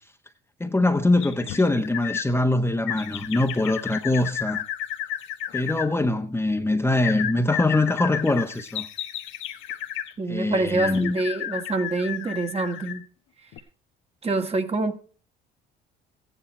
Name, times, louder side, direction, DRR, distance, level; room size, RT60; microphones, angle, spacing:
voice 1, 0.6-4.6 5.5-8.9 10.3-11.2, left 2 dB, 10° left, 1.2 m, -23 dB
sound 1, 1.2-2.3 2.9-5.9 7.0-10.1 10.8-13.0 13.5-13.6, left 11 dB, 70° left, 1.2 m, -33 dB
voice 2, 10.2-13.0 14.2-15.0, right 2 dB, 30° right, 1.9 m, -26 dB
15.0 x 10.0 x 4.5 m
supercardioid pair, 70°, 21 cm